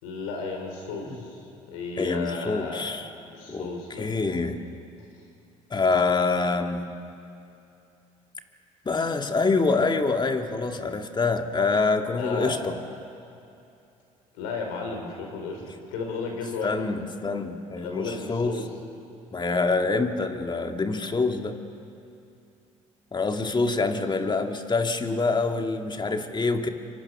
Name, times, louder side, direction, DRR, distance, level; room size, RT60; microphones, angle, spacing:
voice 1, 0.0-1.4 1.7-2.8 3.3-4.1 12.2-12.5 14.3-15.6 15.9-16.8 17.8-18.6, left 4 dB, 80° left, 2 dB, 4.8 m, -33 dB
voice 2, 2.0-3.1 3.5-3.7 4.0-4.6 5.7-6.9 8.9-12.7 16.6-18.6 19.3-21.6 23.1-26.7, left 3 dB, 25° left, 5 dB, 2.1 m, -25 dB
25.0 x 24.5 x 6.1 m, 2.6 s
hypercardioid pair, 65°, 17 cm